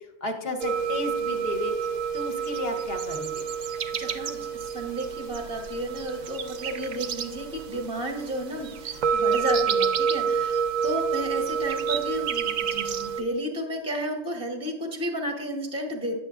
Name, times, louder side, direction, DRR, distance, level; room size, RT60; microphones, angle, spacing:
voice 1, 0.0-3.5, left 2 dB, 55° left, 4 dB, 0.9 m, -33 dB
sound 1, 0.6-13.2, right 6 dB, 90° right, 0.4 m, -28 dB
voice 2, 3.6-16.1, right 1 dB, 5° right, 3 dB, 0.6 m, -32 dB
10.0 x 6.7 x 2.4 m, 1.0 s
omnidirectional pair, 1.3 m